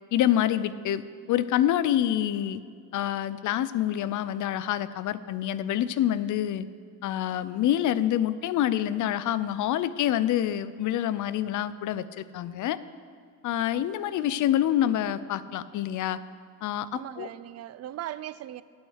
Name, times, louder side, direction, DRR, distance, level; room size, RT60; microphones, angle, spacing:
voice 1, 0.1-1.0 1.3-2.6 2.9-6.6 7.0-12.8 13.4-16.2 16.6-17.3, left 11 dB, 65° left, 0.5 m, -26 dB
voice 2, 16.9-18.6, right 13 dB, 50° right, 0.4 m, -38 dB
8.7 x 8.6 x 6.4 m
cardioid pair, 125°, 33 cm